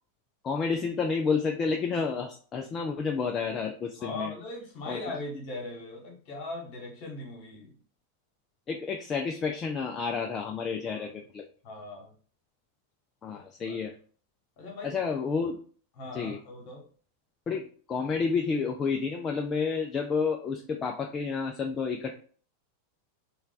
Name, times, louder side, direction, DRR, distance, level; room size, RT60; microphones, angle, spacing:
voice 1, 0.4-4.3 4.9-5.0 8.7-11.4 13.2-13.9 14.8-15.6 16.1-16.4 17.5-22.2, left 5 dB, 25° left, 3 dB, 0.3 m, -30 dB
voice 2, 4.0-7.7 10.9-11.1 11.6-12.1 13.6-13.8 14.6-15.1 16.0-16.9, left 2 dB, 45° left, 1 dB, 1.2 m, -39 dB
3.2 x 2.3 x 3.8 m, 0.43 s
figure-of-eight pair, 90°, 0 cm